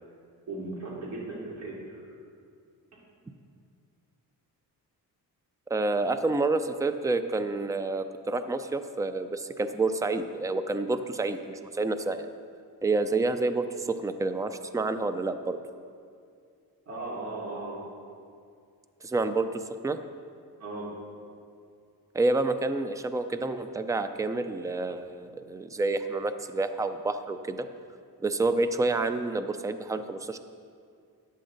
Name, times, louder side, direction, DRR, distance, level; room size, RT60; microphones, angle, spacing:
voice 1, 0.5-2.0 16.9-17.8 20.6-20.9, right 2 dB, 40° right, -5 dB, 2.8 m, -37 dB
voice 2, 5.7-12.3 12.8-15.6 19.0-20.0 22.1-27.7 28.2-30.4, right 3 dB, 10° right, 10 dB, 0.3 m, -28 dB
14.0 x 9.4 x 3.9 m, 2.3 s
wide cardioid pair, 150°, 38 cm